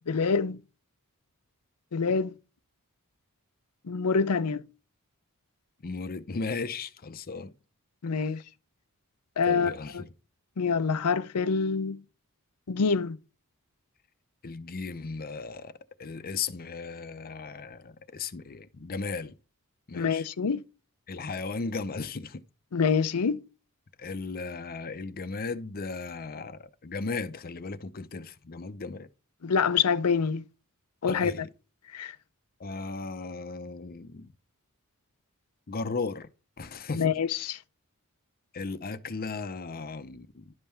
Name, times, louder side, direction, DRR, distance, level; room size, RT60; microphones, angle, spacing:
voice 1, 0.1-0.6 1.9-2.4 3.9-4.6 8.0-8.4 9.4-10.0 10.6-12.0 12.7-13.2 19.9-20.6 22.7-23.4 29.4-30.4 31.0-31.3 31.9-32.2 37.0-37.6, left 5 dB, 85° left, 0.6 m, -26 dB
voice 2, 5.8-7.5 8.2-8.4 9.5-10.1 14.4-15.7 16.0-19.3 19.9-20.3 21.1-22.4 24.0-29.1 31.0-31.4 32.6-34.3 35.7-36.3 36.6-37.1 38.5-40.5, left 4 dB, 40° left, 0.6 m, -36 dB
11.0 x 5.5 x 4.4 m
head